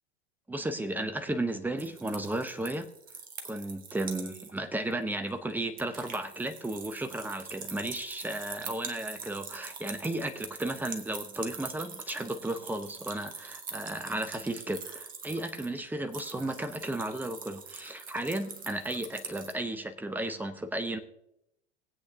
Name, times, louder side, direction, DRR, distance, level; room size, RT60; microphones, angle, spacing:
voice 1, 0.5-2.9 3.4-21.0, right 1 dB, 5° right, 8 dB, 0.8 m, -34 dB
sound 1, 1.8-4.6 4.9-5.0 5.3-19.5, right 5 dB, 25° right, 1.4 m, -44 dB
20.0 x 8.5 x 2.8 m, 0.84 s
figure-of-eight pair, 90°, 34 cm